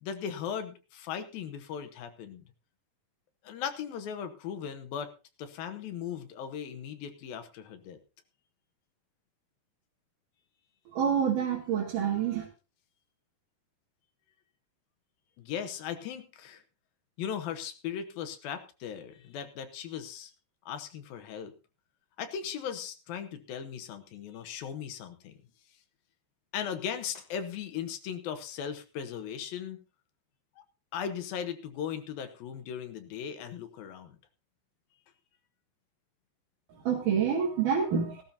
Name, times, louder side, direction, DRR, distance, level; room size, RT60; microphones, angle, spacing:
voice 1, 0.0-2.4 3.4-5.1 5.4-8.0 15.4-16.6 17.2-20.3 20.7-21.5 22.2-25.3 26.5-29.8 30.9-34.2, left 8 dB, 75° left, 8 dB, 2.9 m, -38 dB
voice 2, 10.9-12.5 36.7-38.2, right 7 dB, 65° right, -3 dB, 3.5 m, -27 dB
17.5 x 13.0 x 2.7 m, 0.32 s
omnidirectional pair, 4.2 m